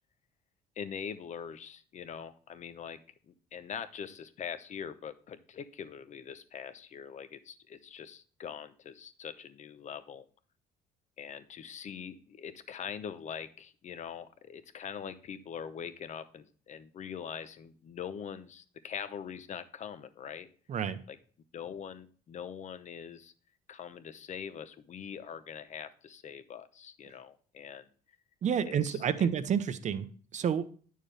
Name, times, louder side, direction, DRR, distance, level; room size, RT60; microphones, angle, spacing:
voice 1, 0.8-3.0 3.3-10.2 11.2-20.5 21.1-21.2 21.5-23.3 23.7-27.9 28.6-29.3, left 7 dB, 45° left, 12 dB, 0.8 m, -43 dB
voice 2, 20.7-21.0 28.4-30.1 30.3-30.6, right 8 dB, 45° right, 12 dB, 0.8 m, -29 dB
9.2 x 6.5 x 3.3 m, 0.43 s
cardioid pair, 110°, 17 cm